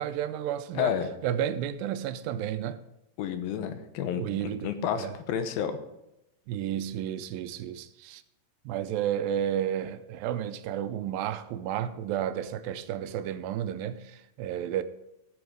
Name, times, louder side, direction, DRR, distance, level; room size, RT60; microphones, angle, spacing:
voice 1, 0.0-0.9 1.2-2.8 4.2-5.1 6.5-8.2 8.7-14.8, right 10 dB, 90° right, 2.4 m, -32 dB
voice 2, 0.7-1.1 3.2-4.2 4.6-5.7, left 9 dB, 85° left, 2.8 m, -30 dB
14.0 x 7.9 x 5.1 m
omnidirectional pair, 4.1 m